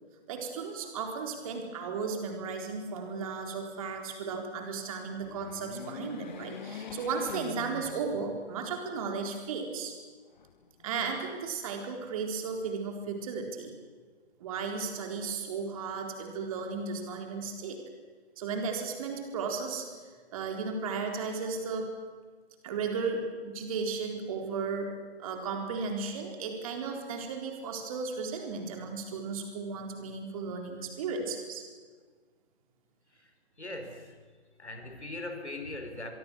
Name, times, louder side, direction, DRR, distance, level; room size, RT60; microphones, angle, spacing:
voice 1, 0.3-9.9 10.8-13.7 14.4-17.8 18.4-19.9 20.3-21.9 22.6-24.9 25.2-31.6, right 5 dB, 30° right, 3 dB, 4.1 m, -35 dB
sound 1, 5.1-8.7 9.2-9.3 10.3-11.1, left 7 dB, 45° left, 1.3 m, -44 dB
voice 2, 33.1-34.3 34.6-36.1, left 2 dB, 85° left, 6 dB, 4.4 m, -41 dB
24.5 x 23.5 x 6.3 m, 1.5 s
figure-of-eight pair, 135°, 33 cm